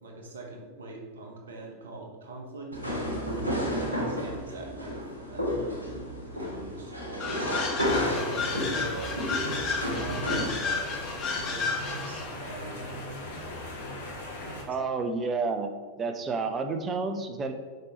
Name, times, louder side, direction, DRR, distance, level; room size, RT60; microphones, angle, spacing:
voice 1, 0.0-3.0 3.5-5.7 6.3-7.7 8.0-9.2 9.8-12.9 13.2-13.6 14.4-14.8, right 3 dB, 65° right, 1 dB, 1.2 m, -43 dB
sound 1, 2.7-10.5, equal, 85° right, 1.3 m, -31 dB
sound 2, 7.2-12.4, left 5 dB, 35° left, 1.6 m, -32 dB
sound 3, 7.8-14.6, left 1 dB, 60° left, 1.3 m, -39 dB
voice 2, 14.7-15.7 16.0-17.5, right 4 dB, 25° right, 6 dB, 0.7 m, -30 dB
6.7 x 5.2 x 3.1 m, 1.5 s
figure-of-eight pair, 90°, 0 cm